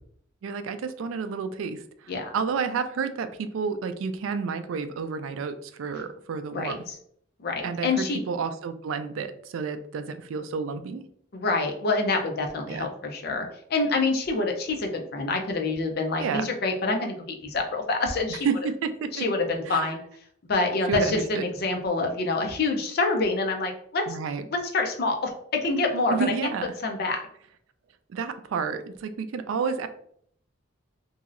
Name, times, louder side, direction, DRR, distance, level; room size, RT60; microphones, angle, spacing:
voice 1, 0.4-6.8 7.6-11.0 12.7-12.9 16.2-16.5 18.3-19.2 19.7-19.8 20.9-21.5 24.1-24.5 26.1-26.7 28.1-29.9, right 5 dB, 80° right, 10 dB, 0.3 m, -30 dB
voice 2, 6.5-6.9 7.4-8.2 11.3-18.5 19.1-20.0 20.5-24.0 24.5-26.2 26.8-27.2, left 3 dB, 50° left, 3 dB, 0.5 m, -26 dB
3.0 x 2.7 x 2.5 m, 0.65 s
head